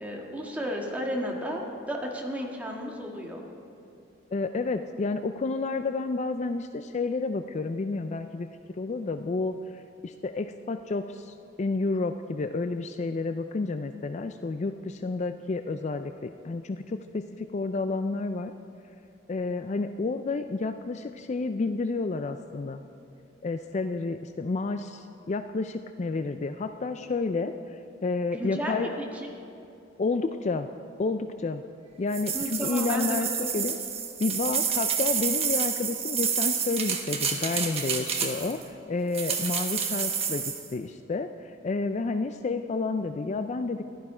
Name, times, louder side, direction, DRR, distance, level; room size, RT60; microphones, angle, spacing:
voice 1, 0.0-3.4 28.3-29.3 32.3-33.5, equal, 10° right, -1 dB, 1.6 m, -33 dB
voice 2, 4.3-8.5 8.7-18.5 19.3-22.8 23.4-28.9 30.0-30.7 31.0-31.6 32.0-33.3 33.5-33.8 34.2-38.6 38.9-40.4 40.7-43.8, left 3 dB, 40° left, 9 dB, 0.4 m, -30 dB
sound 1, 32.1-38.6 39.1-40.7, right 7 dB, 35° right, 1.2 m, -29 dB
15.5 x 12.0 x 4.9 m, 2.6 s
head